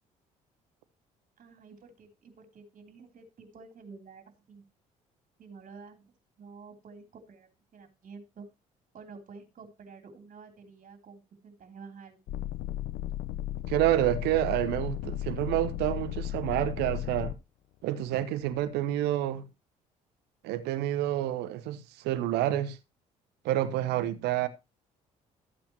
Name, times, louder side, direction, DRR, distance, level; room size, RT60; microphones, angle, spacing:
voice 1, 1.4-4.6 5.4-8.5 8.9-12.2, right 4 dB, 50° right, 3.2 m, -50 dB
sound 1, 12.3-17.3 18.0-18.7, left 13 dB, 70° left, 0.9 m, -35 dB
voice 2, 13.7-17.3 17.8-19.4 20.4-22.8 23.4-24.5, right 13 dB, 75° right, 1.0 m, -28 dB
13.5 x 8.6 x 2.9 m
hypercardioid pair, 55°, 17 cm